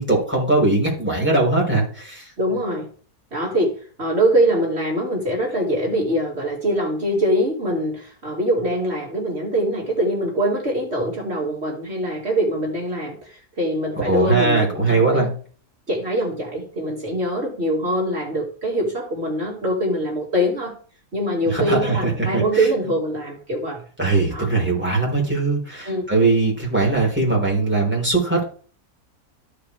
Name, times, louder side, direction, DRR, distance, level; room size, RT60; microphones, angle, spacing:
voice 1, 0.0-2.3 14.1-15.3 21.5-22.7 24.0-28.5, right 3 dB, 5° right, -4 dB, 3.9 m, -20 dB
voice 2, 2.4-2.9 3.3-3.7 4.0-15.2 15.9-20.8 21.1-23.8 24.3-24.5 25.9-26.1, right 1 dB, 45° right, -1 dB, 2.6 m, -23 dB
14.0 x 5.0 x 3.2 m, 0.42 s
omnidirectional pair, 1.5 m